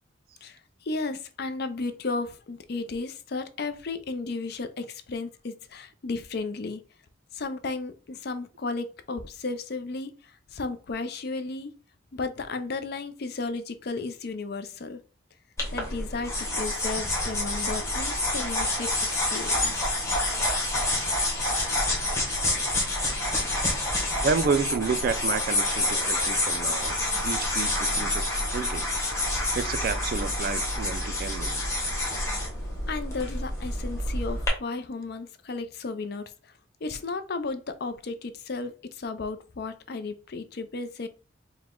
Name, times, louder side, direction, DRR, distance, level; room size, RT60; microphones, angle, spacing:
voice 1, 0.4-6.8 7.3-11.7 12.1-15.0 15.7-19.8 32.9-36.5 36.8-41.1, left 3 dB, 55° left, 0.5 m, -34 dB
sound 1, 15.6-34.5, left 1 dB, 15° left, 1.1 m, -28 dB
voice 2, 24.2-27.0 27.2-28.9 29.1-31.6, right 5 dB, 50° right, 0.4 m, -30 dB
4.7 x 2.1 x 3.7 m
head